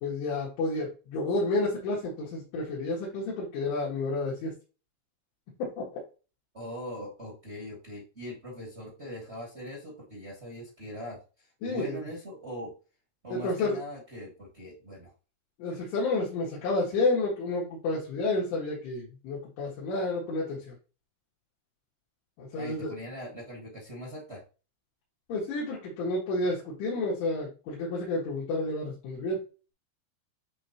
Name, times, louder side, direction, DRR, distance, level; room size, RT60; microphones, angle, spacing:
voice 1, 0.0-4.5 5.8-5.9 11.6-12.0 13.3-13.8 15.6-20.7 22.4-22.9 25.3-29.4, left 2 dB, 85° left, -7 dB, 4.2 m, -30 dB
voice 2, 6.5-12.7 13.2-15.1 22.5-24.4, equal, 70° right, -3 dB, 0.6 m, -41 dB
9.9 x 3.4 x 2.9 m, 0.34 s
omnidirectional pair, 5.2 m